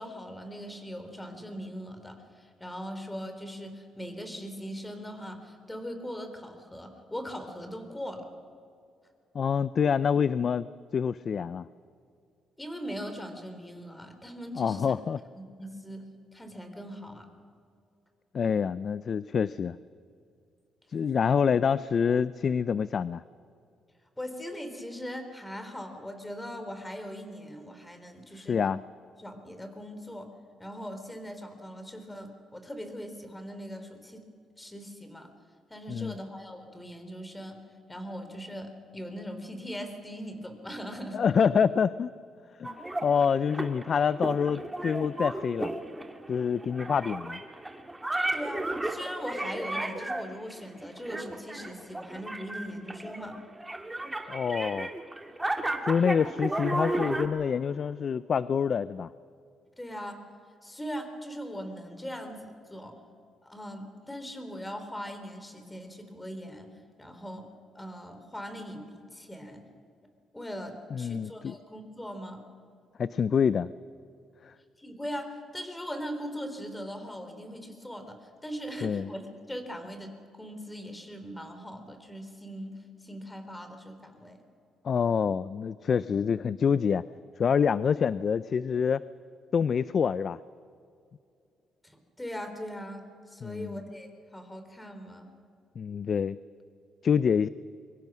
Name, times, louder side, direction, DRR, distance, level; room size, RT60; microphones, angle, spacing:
voice 1, 0.0-8.3 12.6-14.9 15.3-17.3 24.2-28.6 29.2-30.3 30.6-34.2 34.6-35.3 35.7-37.6 37.9-41.2 48.3-53.4 59.8-60.2 60.6-62.9 63.4-66.7 67.0-67.5 67.7-69.6 70.3-72.4 74.8-79.2 79.5-82.8 83.0-84.4 91.8-95.3, equal, 10° left, 7 dB, 3.6 m, -40 dB
voice 2, 9.3-10.7 10.9-11.7 14.6-15.2 18.3-19.8 20.9-23.2 28.3-28.8 35.9-36.1 41.1-42.1 42.6-42.8 43.0-45.7 46.3-47.4 54.3-54.9 55.8-59.1 70.9-71.5 73.0-73.7 74.4-74.5 78.8-79.1 84.8-87.0 87.4-89.0 89.5-90.4 93.4-93.8 95.8-96.4 97.0-97.5, left 6 dB, 50° left, 16 dB, 0.4 m, -26 dB
sound 1, 42.6-57.3, right 1 dB, 10° right, 2.1 m, -34 dB
24.0 x 23.5 x 6.2 m, 2.5 s
cardioid pair, 90°, 0 cm